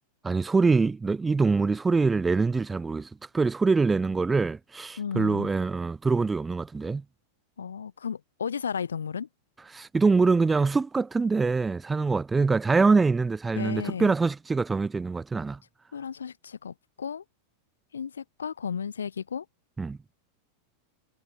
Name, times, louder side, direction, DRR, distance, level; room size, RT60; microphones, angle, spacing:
voice 1, 0.2-7.0 9.7-15.6 19.8-20.0, right 4 dB, 10° right, 0.4 m, -24 dB
voice 2, 5.0-5.5 7.6-9.3 13.5-14.1 15.9-17.2 17.9-19.4, left 7 dB, 70° left, 0.8 m, -34 dB
figure-of-eight pair, 90°, 0 cm